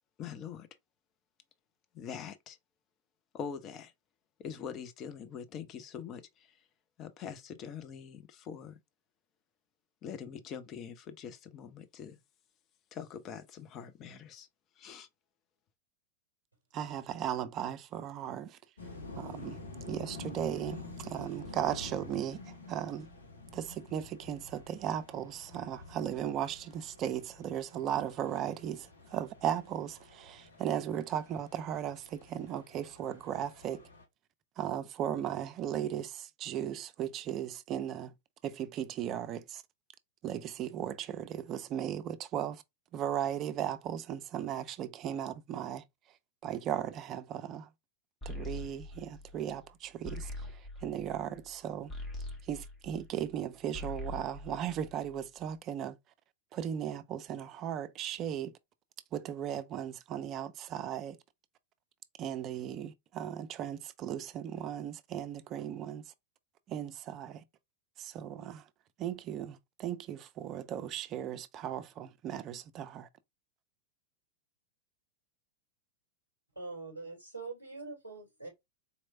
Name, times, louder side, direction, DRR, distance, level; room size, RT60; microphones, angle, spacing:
voice 1, 0.2-0.7 1.9-2.6 3.3-3.9 4.4-6.5 7.0-8.8 10.0-12.2 12.9-14.5 14.8-15.1, left 7 dB, 35° left, 0.6 m, -43 dB
voice 2, 16.7-18.6 19.1-23.1 23.5-33.9 34.6-38.1 38.4-39.6 40.2-42.6 42.9-45.8 46.4-47.7 48.3-51.9 52.4-56.0 56.5-58.5 59.1-61.2 62.2-66.0 66.7-67.4 68.0-68.6 69.0-73.1, right 10 dB, 35° right, 0.4 m, -37 dB
sound 1, 18.8-34.1, left 3 dB, 70° left, 1.0 m, -49 dB
sound 2, 48.2-53.4 53.7-55.4, left 2 dB, 15° left, 1.4 m, -43 dB
voice 3, 76.5-78.5, right 3 dB, 90° left, 2.9 m, -43 dB
4.1 x 3.1 x 2.6 m
figure-of-eight pair, 90°, 0 cm